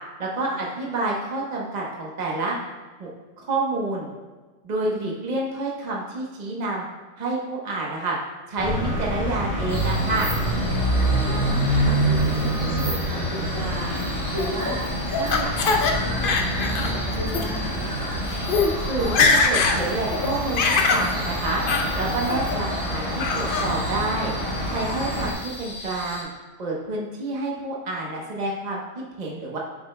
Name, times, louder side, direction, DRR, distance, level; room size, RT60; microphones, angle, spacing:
voice 1, 0.2-2.7 3.0-3.1 3.4-4.1 4.6-6.9 7.2-8.2 8.5-10.3 18.9-21.6 21.9-24.3 24.7-26.3 26.6-29.6, right 2 dB, 35° right, -3 dB, 1.1 m, -28 dB
voice 2, 4.8-5.1 11.2-18.2 25.2-25.5, right 1 dB, 90° right, -5 dB, 2.1 m, -35 dB
sound 1, 8.6-25.3, right 1 dB, 30° left, 1.4 m, -26 dB
sound 2, 9.7-26.2, left 1 dB, 20° right, 1.7 m, -37 dB
Laughter, 14.4-15.9 16.2-16.9 17.3-17.4 18.1-18.2 18.4-18.7 19.0-19.8 20.1-21.1 21.7-21.9 22.3-22.8 23.2-23.7, left 4 dB, 55° left, 0.8 m, -22 dB
8.6 x 7.0 x 2.2 m, 1.3 s
omnidirectional pair, 1.3 m